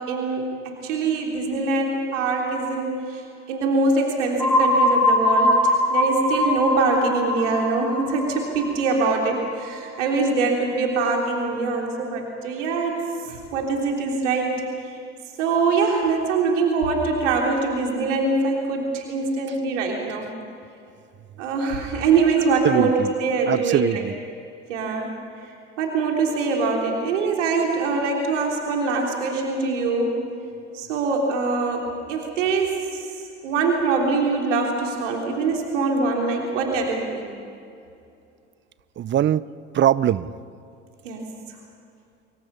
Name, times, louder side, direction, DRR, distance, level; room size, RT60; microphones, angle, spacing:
voice 1, 0.0-14.6 14.9-15.0 15.4-20.3 21.4-24.1 24.7-25.1 25.8-30.2 30.7-33.1 33.4-37.3 41.0-41.2, right 4 dB, 70° right, 1 dB, 3.5 m, -23 dB
sound 1, 4.4-10.1, left 1 dB, 5° left, 7.3 m, -22 dB
voice 2, 22.6-23.1 23.5-24.1 39.0-39.4 39.7-40.3, right 11 dB, 30° right, 19 dB, 0.7 m, -21 dB
25.5 x 24.5 x 5.6 m, 2.5 s
figure-of-eight pair, 65°, 37 cm